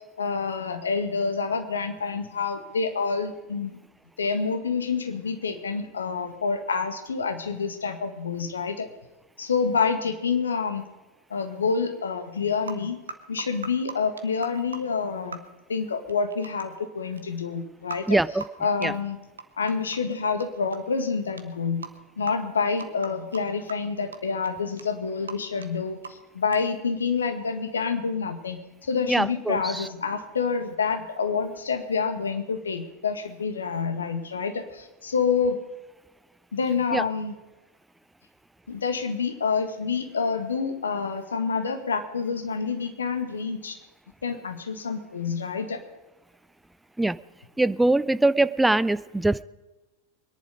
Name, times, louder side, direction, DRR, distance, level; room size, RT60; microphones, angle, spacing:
voice 1, 0.2-3.8 4.2-8.9 9.4-10.8 11.3-13.0 13.3-15.4 15.7-18.2 18.6-19.2 19.6-21.8 22.2-35.6 36.5-37.4 38.7-43.8 44.2-45.8, left 5 dB, 70° left, 7 dB, 1.7 m, -28 dB
sound 1, 12.7-12.8 13.1-14.8 15.3-15.4 16.1-16.8 17.2-17.3 17.9-18.0 18.4-18.5 18.8-18.9 19.4-20.1 20.4-20.5 20.7-20.9 21.4-21.5 21.8-21.9 22.2-22.3 22.8-23.4 23.7-23.8 24.1-24.2 24.4-24.5 24.8-24.9 25.1-25.3 25.6-25.7 26.0-26.3 26.5-26.6, right 4 dB, 70° right, 1.2 m, -37 dB
voice 2, 18.1-18.4 18.8-18.9 29.1-29.8 36.9-37.0 47.0-47.2 47.6-49.4, right 2 dB, 5° right, 17 dB, 0.4 m, -22 dB
23.0 x 10.5 x 5.1 m, 1.1 s
figure-of-eight pair, 90°, 0 cm